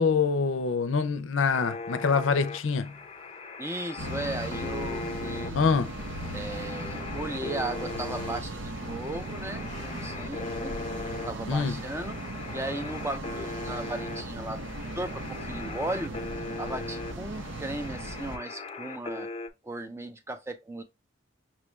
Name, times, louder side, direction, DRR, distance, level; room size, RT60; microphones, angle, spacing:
voice 1, 0.0-2.9 5.5-5.9 11.5-11.8, left 5 dB, 75° left, 0.5 m, -25 dB
sound 1, 1.5-19.5, left 3 dB, 30° left, 0.5 m, -39 dB
voice 2, 3.6-5.6 6.3-10.7 11.3-12.2 12.5-16.1 16.6-19.3 19.6-20.8, right 2 dB, 15° right, 0.6 m, -36 dB
sound 2, 4.0-18.4, right 1 dB, 70° right, 0.8 m, -37 dB
6.0 x 2.4 x 3.2 m
head